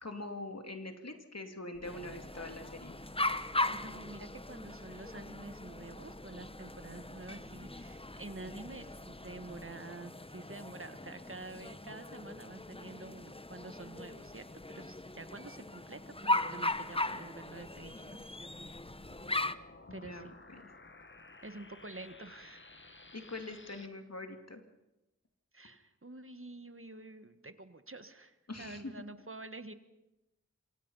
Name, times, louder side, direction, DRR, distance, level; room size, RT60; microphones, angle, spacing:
voice 1, 0.0-3.0 19.9-20.7 23.1-24.6 28.5-29.0, left 2 dB, 60° left, 5 dB, 2.5 m, -44 dB
sound 1, 1.7-9.7, right 1 dB, 25° right, 1.6 m, -56 dB
sound 2, 1.8-19.5, left 2 dB, 20° left, 0.8 m, -39 dB
voice 2, 3.7-18.2 19.9-20.3 21.4-22.8 25.5-29.7, right 2 dB, 45° right, 10 dB, 1.5 m, -48 dB
sound 3, 18.9-23.9, left 2 dB, 40° left, 1.6 m, -55 dB
26.5 x 25.0 x 5.5 m, 0.95 s
wide cardioid pair, 45°, 29 cm